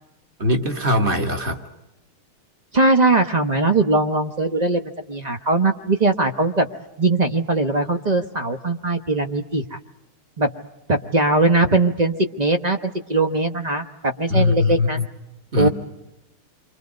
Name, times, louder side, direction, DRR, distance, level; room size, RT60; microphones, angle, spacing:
voice 1, 0.4-1.6 14.3-15.1 15.5-15.7, left 2 dB, 25° right, 4 dB, 1.9 m, -21 dB
voice 2, 2.7-6.7 7.0-9.8 10.4-10.5 10.9-15.0 15.5-15.7, right 2 dB, 40° right, 7 dB, 0.5 m, -20 dB
29.5 x 24.5 x 5.2 m, 0.89 s
omnidirectional pair, 2.4 m